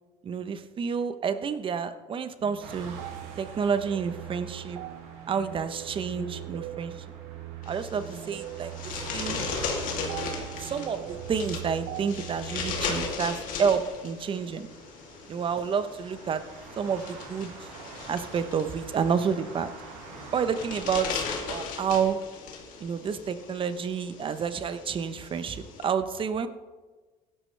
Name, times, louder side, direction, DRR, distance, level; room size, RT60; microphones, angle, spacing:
voice 1, 0.2-3.0 3.4-4.8 5.3-6.9 7.7-9.4 10.4-14.7 15.3-16.4 16.8-17.5 18.1-19.7 20.3-22.2 22.8-26.5, right 6 dB, 35° right, 11 dB, 1.0 m, -29 dB
sound 1, 2.4-13.1, right 15 dB, 65° right, 0.6 m, -40 dB
sound 2, 2.6-20.9, right 3 dB, 85° right, 4.2 m, -47 dB
sound 3, 7.6-25.8, left 5 dB, 60° left, 2.9 m, -38 dB
16.5 x 12.0 x 3.4 m, 1.3 s
cardioid pair, 115°, 15 cm